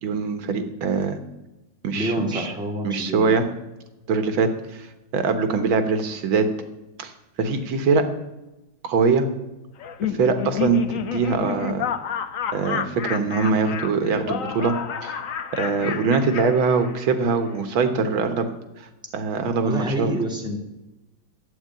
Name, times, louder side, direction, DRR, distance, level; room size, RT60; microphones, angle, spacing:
voice 1, 0.0-1.2 1.8-2.5 2.8-3.4 4.1-4.9 5.1-6.5 7.0-7.1 7.4-8.1 8.8-9.3 10.0-10.8 11.1-11.9 12.5-14.7 15.0-15.1 15.5-18.5 18.8-18.9 19.1-20.1, right 4 dB, 90° right, 8 dB, 2.1 m, -22 dB
voice 2, 1.9-3.3 15.8-16.0 19.6-20.6, equal, ahead, 0 dB, 2.3 m, -28 dB
Laughter, 9.8-17.3, left 8 dB, 55° left, 1.0 m, -30 dB
12.5 x 8.4 x 8.9 m, 0.98 s
omnidirectional pair, 2.1 m